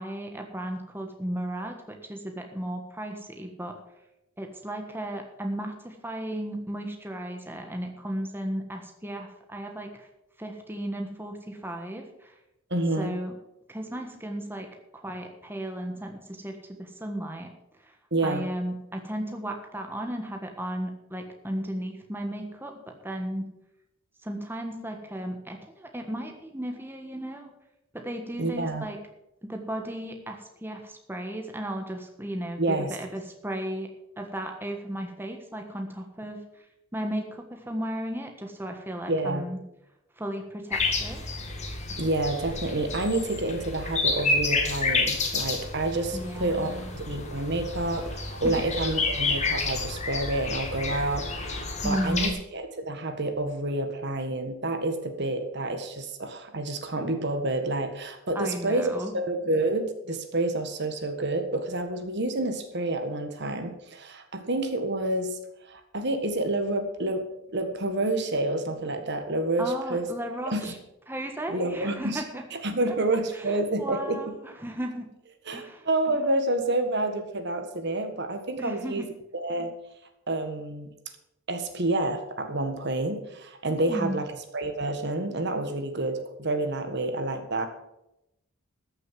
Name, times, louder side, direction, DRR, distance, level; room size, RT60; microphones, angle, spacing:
voice 1, 0.0-3.8 4.4-10.1 10.4-12.3 13.0-13.3 13.7-17.5 17.8-17.9 18.2-23.5 24.2-27.5 27.9-29.0 29.4-33.9 34.2-36.7 36.9-39.6 40.2-41.2 46.1-46.9 48.4-48.5 51.8-52.4 58.3-59.1 69.6-70.8 71.1-72.4 72.9-73.0 73.3-75.1 75.5-75.9 78.6-79.1 83.7-84.2, right 1 dB, 10° right, 3 dB, 1.4 m, -35 dB
voice 2, 12.7-13.1 18.1-18.5 28.3-28.9 32.6-32.9 39.1-39.5 42.0-51.6 51.8-67.2 67.5-70.1 70.5-70.7 71.5-72.2 72.6-74.2 75.5-79.0 79.3-79.7 80.3-80.9 81.5-84.3 84.5-87.7, right 2 dB, 55° right, 7 dB, 1.6 m, -28 dB
sound 1, 40.7-52.3, left 3 dB, 35° left, 1.9 m, -30 dB
14.0 x 6.7 x 7.5 m, 0.86 s
head